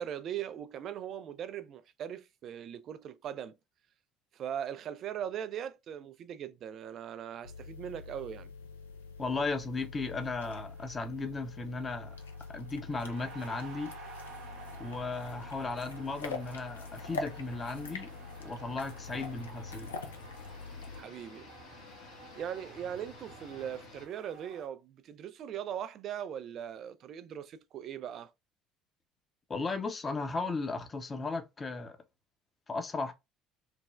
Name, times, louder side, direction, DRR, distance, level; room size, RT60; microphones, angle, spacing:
voice 1, 0.0-3.6 4.3-8.5 20.9-21.5 22.3-28.3, right 9 dB, 50° right, 0.3 m, -40 dB
sound 1, 7.4-21.0, left 4 dB, 80° left, 0.4 m, -44 dB
voice 2, 9.2-12.2 12.5-13.9 14.8-18.1 18.4-19.9 29.5-32.0 32.7-33.1, left 3 dB, 30° left, 0.7 m, -36 dB
sound 2, 10.6-24.7, right 4 dB, 65° right, 0.7 m, -53 dB
sound 3, 14.2-24.1, left 4 dB, 60° left, 0.8 m, -54 dB
3.3 x 2.1 x 2.3 m
figure-of-eight pair, 60°, 0 cm